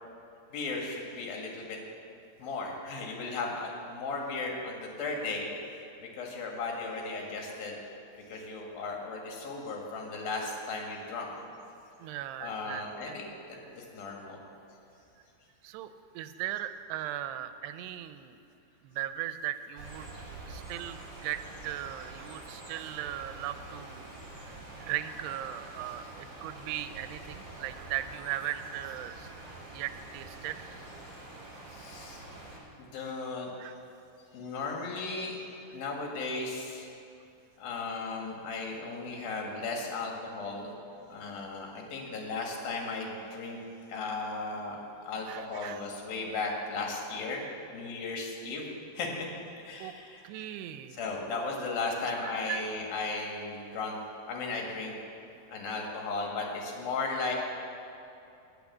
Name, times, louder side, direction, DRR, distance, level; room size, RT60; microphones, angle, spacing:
voice 1, 0.5-1.8 2.4-5.5 6.0-7.8 8.3-11.3 12.4-14.4 25.9-26.0 31.7-32.2 32.8-33.5 34.3-35.4 35.7-36.9 37.6-40.7 41.1-43.6 43.9-44.8 45.1-47.4 47.7-48.7 48.9-49.3 49.6-50.2 50.9-54.0 54.3-55.0 55.5-57.4, left 3 dB, 65° left, 0 dB, 3.4 m, -36 dB
voice 2, 12.0-13.2 15.6-18.4 18.8-20.1 20.5-24.1 24.4-29.3 29.7-30.6 33.6-33.7 45.3-45.8 49.8-50.0 50.2-51.0 52.3-52.6, right 12 dB, 85° right, 11 dB, 2.6 m, -38 dB
sound 1, 19.8-32.6, right 2 dB, 30° right, 2.8 m, -46 dB
18.5 x 6.3 x 7.2 m, 2.7 s
omnidirectional pair, 4.8 m